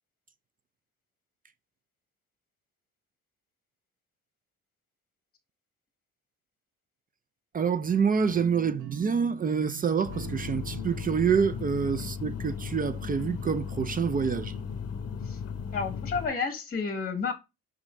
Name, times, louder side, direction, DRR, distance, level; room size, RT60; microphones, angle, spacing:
voice 1, 7.5-14.6, right 6 dB, 30° right, 0.4 m, -27 dB
sound 1, 8.1-13.2, right 8 dB, 80° right, 0.6 m, -46 dB
sound 2, 10.0-16.3, left 6 dB, 55° left, 0.7 m, -36 dB
voice 2, 15.7-17.3, left 5 dB, 30° left, 0.9 m, -31 dB
5.6 x 2.6 x 3.3 m
cardioid pair, 90°, 30 cm